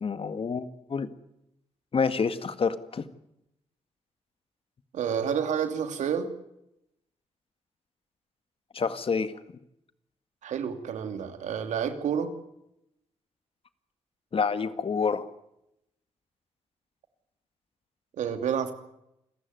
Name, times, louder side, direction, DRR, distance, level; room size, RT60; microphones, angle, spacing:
voice 1, 0.0-1.1 1.9-3.0 8.7-9.3 14.3-15.3, left 5 dB, 50° left, 11 dB, 1.9 m, -28 dB
voice 2, 4.9-6.3 10.4-12.3 18.2-18.7, right 8 dB, 80° right, 8 dB, 2.8 m, -29 dB
28.0 x 15.0 x 9.5 m, 0.83 s
cardioid pair, 70°, 12 cm